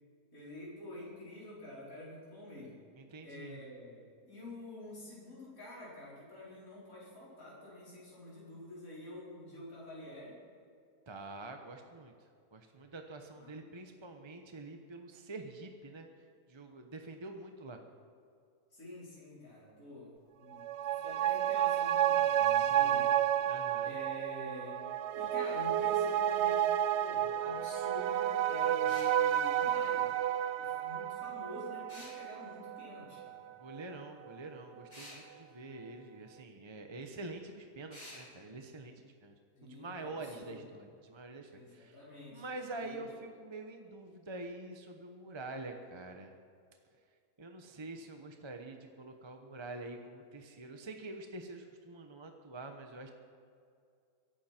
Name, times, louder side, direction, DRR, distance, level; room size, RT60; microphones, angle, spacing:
voice 1, 0.3-2.8 3.2-10.4 13.4-13.6 18.7-23.2 23.8-30.1 30.5-33.5 39.6-40.6 41.5-42.4 42.8-43.2, left 1 dB, 60° left, -8 dB, 5.1 m, -48 dB
voice 2, 3.0-3.6 11.1-12.1 12.5-16.1 16.5-17.8 22.5-23.1 23.5-24.0 28.7-28.8 33.6-39.3 39.6-42.0 42.3-46.3 47.4-53.1, right 2 dB, 20° right, 4 dB, 0.9 m, -46 dB
sound 1, 20.5-33.4 33.7-33.8, right 10 dB, 70° right, 0.7 m, -31 dB
sound 2, 28.9-29.1 31.9-32.2 34.9-35.2 37.9-38.2, left 1 dB, 35° left, 5.4 m, -49 dB
22.5 x 11.5 x 4.5 m, 2.4 s
omnidirectional pair, 1.6 m